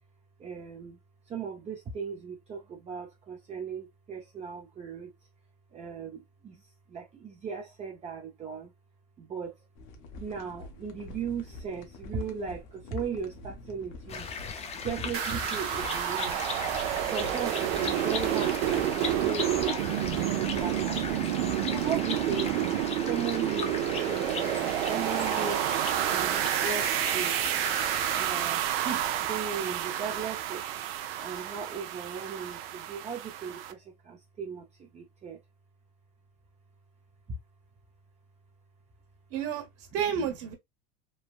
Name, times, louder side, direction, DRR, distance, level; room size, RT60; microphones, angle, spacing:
voice 1, 0.4-1.0 1.3-5.1 5.7-6.6 6.9-8.7 9.2-9.5 10.2-14.3 14.8-16.4 16.9-21.2 21.7-22.6 23.0-25.7 26.1-27.4 28.1-30.6 31.2-35.4, right 6 dB, 25° right, 0.5 m, -37 dB
sound 1, 9.8-22.0, left 2 dB, 60° left, 0.8 m, -47 dB
sound 2, 14.1-28.3, left 5 dB, 20° left, 0.5 m, -38 dB
sound 3, 15.1-33.7, right 11 dB, 75° right, 0.6 m, -30 dB
voice 2, 39.3-40.5, right 8 dB, 55° right, 1.2 m, -31 dB
3.3 x 2.1 x 2.4 m
supercardioid pair, 120°, 30 cm